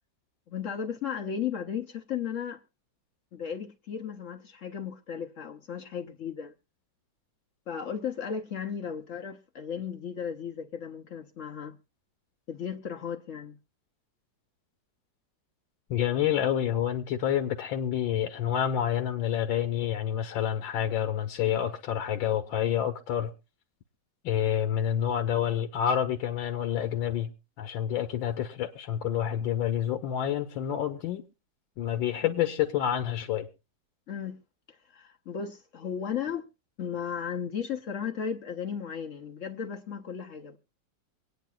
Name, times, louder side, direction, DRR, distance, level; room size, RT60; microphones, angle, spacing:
voice 1, 0.5-2.6 3.3-6.5 7.7-11.8 12.5-13.6 34.1-34.4 34.9-36.5 36.8-40.6, left 7 dB, 60° left, 0.9 m, -35 dB
voice 2, 15.9-23.3 24.2-27.3 27.6-31.2 31.8-33.5, left 10 dB, 90° left, 1.6 m, -28 dB
25.0 x 9.2 x 2.3 m
omnidirectional pair, 2.0 m